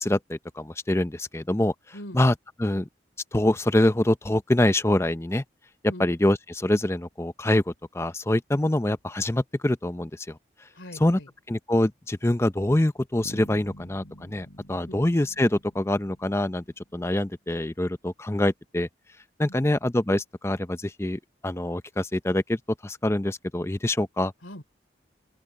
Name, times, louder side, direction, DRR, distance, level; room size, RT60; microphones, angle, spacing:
voice 1, 0.0-1.7 2.1-2.3 2.6-2.9 3.3-5.4 6.0-10.4 11.0-11.2 11.5-16.6 16.9-18.9 19.4-24.3, left 1 dB, 15° left, 0.5 m, -25 dB
voice 2, 10.7-11.3 14.9-15.0 19.5-19.7 24.4-24.6, equal, 90° left, 3.3 m, -42 dB
Bass guitar, 13.2-17.0, equal, 60° left, 5.1 m, -47 dB
open air
head